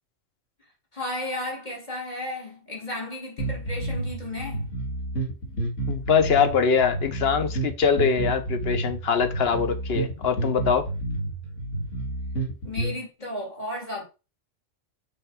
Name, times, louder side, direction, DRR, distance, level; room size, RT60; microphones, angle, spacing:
voice 1, 0.9-4.7 12.6-14.0, left 1 dB, 35° left, 2.6 m, -34 dB
sound 1, 3.4-12.9, right 2 dB, 75° left, 2.6 m, -30 dB
voice 2, 5.9-10.9, left 6 dB, 55° left, 1.1 m, -23 dB
6.1 x 5.0 x 4.8 m
omnidirectional pair, 1.3 m